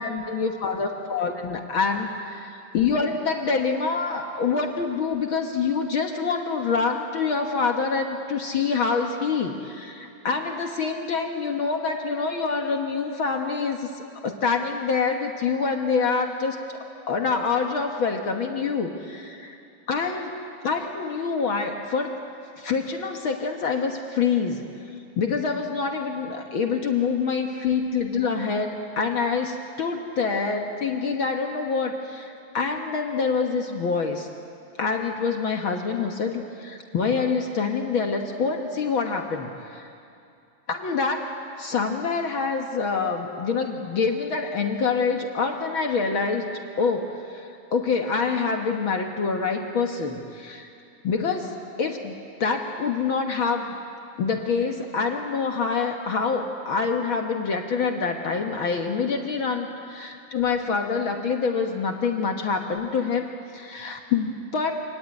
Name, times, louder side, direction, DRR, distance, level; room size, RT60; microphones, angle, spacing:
voice 1, 0.0-16.6 17.1-19.6 19.9-20.3 20.6-22.2 22.6-24.6 25.2-34.3 34.8-39.9 40.7-41.2 41.6-46.5 46.8-50.7 51.0-53.8 54.2-64.7, left 5 dB, 50° left, 3 dB, 1.7 m, -26 dB
26.5 x 18.0 x 9.6 m, 2.5 s
omnidirectional pair, 3.5 m